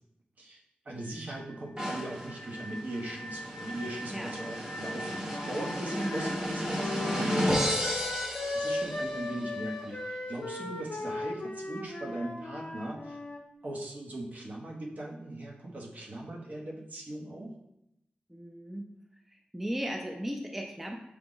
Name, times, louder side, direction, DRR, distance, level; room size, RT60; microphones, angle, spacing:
voice 1, 0.8-8.3 8.5-13.2 13.6-17.5, right 1 dB, 55° right, -1 dB, 0.8 m, -40 dB
sound 1, 1.0-7.9, right 1 dB, 90° left, 0.4 m, -46 dB
sound 2, 1.8-9.3, equal, 25° right, 0.9 m, -33 dB
Wind instrument woodwind instrument, 5.3-13.4, left 2 dB, 45° left, 0.6 m, -37 dB
voice 2, 5.9-6.5 18.3-18.9 19.3-21.0, equal, 5° right, 2 dB, 0.4 m, -36 dB
4.5 x 2.0 x 3.7 m, 0.83 s
wide cardioid pair, 85°, 3 cm